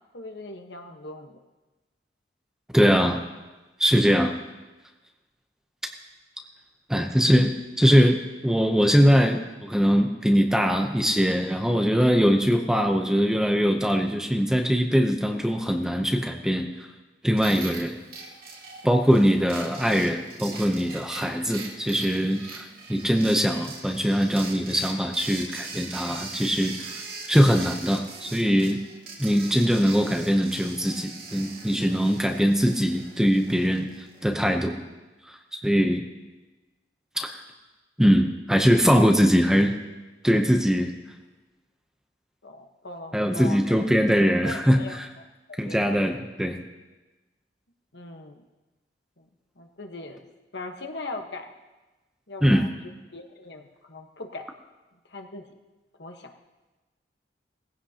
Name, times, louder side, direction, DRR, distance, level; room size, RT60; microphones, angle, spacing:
voice 1, 0.1-1.4 42.4-43.8 44.4-45.0 45.6-45.8 47.9-48.4 49.2-49.3 49.6-50.2 50.5-51.5 52.3-52.8 53.1-54.5 55.1-55.5 56.0-56.3, left 2 dB, 65° left, 4 dB, 1.2 m, -39 dB
voice 2, 2.7-3.2 3.8-4.3 6.9-8.2 8.4-16.9 17.2-17.9 18.8-27.0 27.3-28.8 29.2-33.9 34.2-34.8 35.3-35.4 35.6-36.0 37.2-37.4 38.0-39.8 40.2-40.9 43.1-45.1 45.6-46.6 52.4-52.7, equal, 5° right, 4 dB, 0.7 m, -22 dB
sound 1, 17.4-34.3, right 4 dB, 50° right, 2.0 m, -41 dB
19.0 x 15.5 x 2.9 m, 1.2 s
head